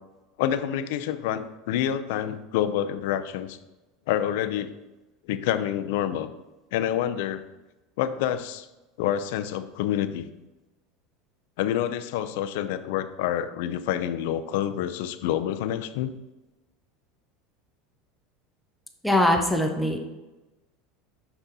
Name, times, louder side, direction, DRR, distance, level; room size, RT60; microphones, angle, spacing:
voice 1, 0.4-3.6 4.1-4.7 5.2-6.3 6.7-7.4 8.0-8.7 9.0-10.3 11.6-16.1, left 11 dB, 70° left, 11 dB, 0.4 m, -27 dB
voice 2, 19.0-20.0, left 1 dB, ahead, 2 dB, 0.6 m, -22 dB
6.7 x 6.0 x 2.8 m, 1.1 s
supercardioid pair, 160°, 0 cm